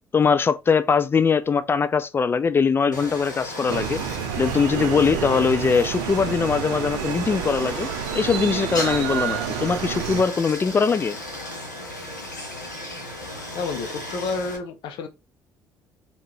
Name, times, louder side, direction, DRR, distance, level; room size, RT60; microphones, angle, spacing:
voice 1, 0.1-4.0 4.4-7.9 8.1-11.2, left 5 dB, 25° left, 0.4 m, -21 dB
Stream, 2.9-14.6, left 1 dB, 90° left, 0.7 m, -35 dB
sound 1, 3.7-10.2, right 9 dB, 65° right, 0.5 m, -29 dB
voice 2, 13.5-15.1, left 4 dB, 55° left, 0.7 m, -30 dB
3.6 x 2.4 x 3.0 m
figure-of-eight pair, 50°, 10 cm